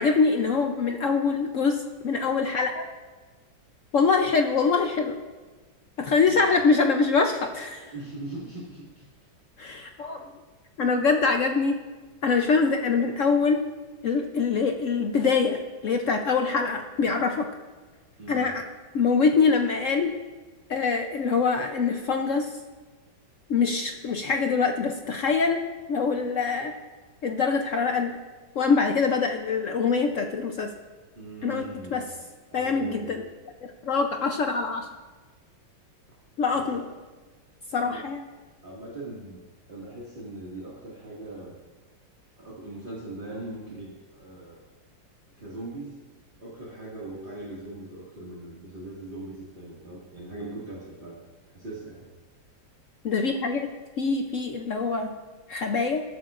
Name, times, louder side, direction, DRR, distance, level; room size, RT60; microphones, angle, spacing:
voice 1, 0.0-2.8 3.9-5.2 6.0-7.9 9.6-10.3 10.8-11.8 12.2-13.6 14.0-17.5 18.3-18.6 18.9-20.1 20.7-22.6 23.5-25.6 25.9-26.7 27.2-28.2 28.6-30.7 31.4-31.6 31.9-32.0 32.5-33.2 33.6-34.9 36.4-36.8 37.7-38.2 53.0-53.7 54.0-55.2 55.5-56.0, left 4 dB, 65° left, 4 dB, 0.7 m, -24 dB
voice 2, 7.9-9.1 18.2-18.5 31.2-32.1 32.5-33.2 36.5-36.8 37.8-38.1 38.6-41.5 42.4-44.6 45.4-46.0 46.4-51.2 51.5-52.0, right 2 dB, 25° right, -6 dB, 2.1 m, -40 dB
19.0 x 13.0 x 2.5 m, 1.3 s
omnidirectional pair, 2.1 m